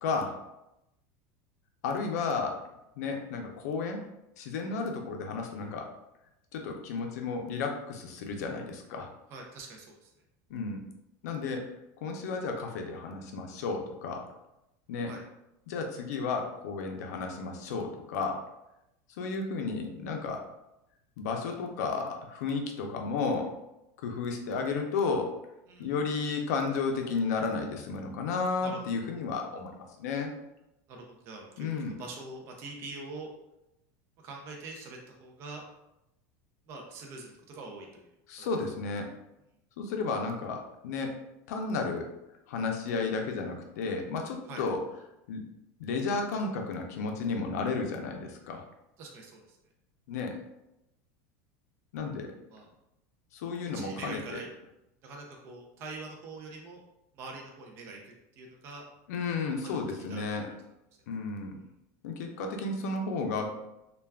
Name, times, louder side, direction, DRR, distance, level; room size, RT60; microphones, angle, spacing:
voice 1, 0.0-0.4 1.8-2.6 3.0-4.0 4.4-5.9 6.5-9.1 10.5-10.8 11.2-11.7 12.0-14.3 14.9-15.1 15.7-18.4 19.2-20.4 21.2-23.5 24.0-25.3 25.8-30.3 31.6-31.9 38.3-39.1 39.8-41.2 41.5-42.1 42.5-44.8 45.3-45.4 45.8-48.6 50.1-50.4 51.9-52.3 53.3-54.4 59.1-60.5 61.1-61.6 62.0-63.5, left 4 dB, 85° left, 3 dB, 0.4 m, -33 dB
voice 2, 9.3-10.1 15.1-15.2 25.7-25.9 28.6-29.1 30.9-33.3 34.2-35.6 36.7-38.1 38.4-38.5 44.5-44.6 49.0-49.6 52.5-52.7 53.7-54.5 55.0-56.8 57.1-58.8 59.6-60.6, right 3 dB, 30° right, 1 dB, 0.4 m, -44 dB
2.2 x 2.2 x 3.3 m, 0.88 s
supercardioid pair, 175°, 9 cm